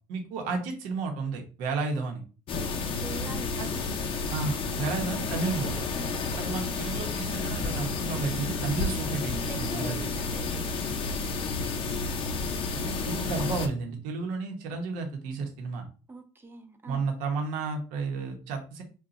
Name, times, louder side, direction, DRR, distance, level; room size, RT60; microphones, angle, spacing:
voice 1, 0.1-2.2 3.6-3.7 4.3-5.8 6.4-10.0 12.7-15.8 16.9-18.8, right 4 dB, 85° right, 0.8 m, -32 dB
sound 1, 2.5-13.7, left 4 dB, 40° left, 0.5 m, -31 dB
voice 2, 3.0-3.8 4.8-5.1 5.9-6.2 9.5-10.8 16.1-17.1, right 3 dB, 15° right, 0.3 m, -43 dB
2.5 x 2.2 x 3.9 m
cardioid pair, 140°, 13 cm